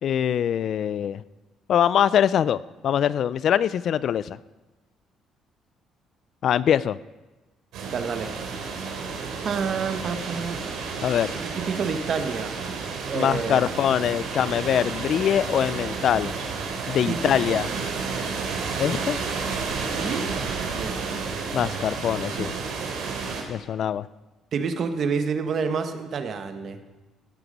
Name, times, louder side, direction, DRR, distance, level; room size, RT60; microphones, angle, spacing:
voice 1, 0.0-1.2 1.7-4.4 6.4-7.0 11.0-11.4 13.1-16.4 16.9-17.7 18.8-19.2 21.5-22.5 23.5-24.1, left 9 dB, 60° left, 18 dB, 0.4 m, -23 dB
sound 1, 7.7-23.4, right 4 dB, 80° right, 3.1 m, -31 dB
voice 2, 7.9-8.4 9.4-10.6 11.4-12.6 13.1-13.6 17.1-17.6 19.9-20.3 20.8-21.2 24.5-26.8, right 5 dB, 55° right, 8 dB, 1.3 m, -29 dB
16.0 x 9.8 x 5.3 m, 1.1 s
cardioid pair, 90°, 0 cm